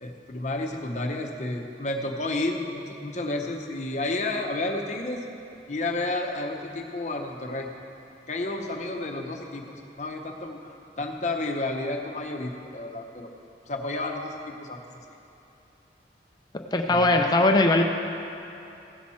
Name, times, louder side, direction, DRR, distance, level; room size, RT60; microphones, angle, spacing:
voice 1, 0.0-5.2 5.7-7.7 8.3-9.6 10.0-13.3 13.7-14.8 15.1-15.2 16.9-17.1, left 2 dB, 40° left, 2 dB, 0.8 m, -31 dB
voice 2, 16.5-17.8, left 2 dB, 25° left, 4 dB, 0.4 m, -20 dB
16.0 x 6.0 x 4.2 m, 2.9 s
head